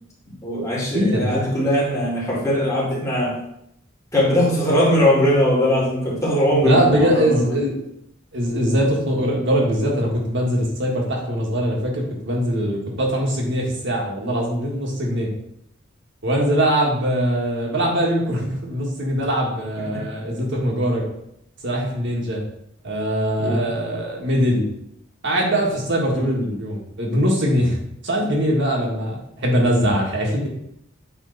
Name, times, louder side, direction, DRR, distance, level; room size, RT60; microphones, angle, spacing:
voice 1, 0.4-3.4 4.1-7.5 19.9-20.0 23.4-23.7 26.1-26.3, equal, 15° left, -6 dB, 2.2 m, -20 dB
voice 2, 0.9-1.4 6.6-7.8 8.3-15.3 16.2-21.0 21.6-22.4 22.8-24.7 25.2-27.8 28.0-30.5, equal, 60° right, -1 dB, 1.7 m, -21 dB
8.3 x 3.6 x 4.0 m, 0.77 s
head